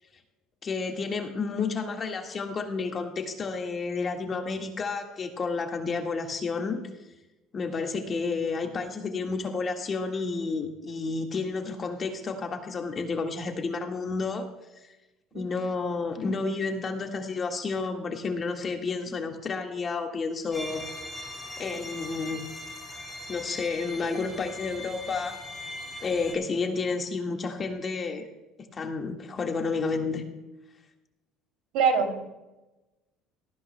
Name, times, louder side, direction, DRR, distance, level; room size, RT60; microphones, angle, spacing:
voice 1, 0.6-6.8 7.5-14.5 15.3-20.8 21.6-22.4 23.3-25.4 26.0-28.3 28.7-30.2, left 4 dB, 35° left, 3 dB, 1.7 m, -31 dB
sound 1, 20.5-26.3, left 1 dB, 10° left, 3.1 m, -40 dB
voice 2, 31.7-32.3, right 5 dB, 75° right, 3 dB, 2.8 m, -24 dB
18.0 x 14.5 x 2.2 m, 1.0 s
supercardioid pair, 110°, 0 cm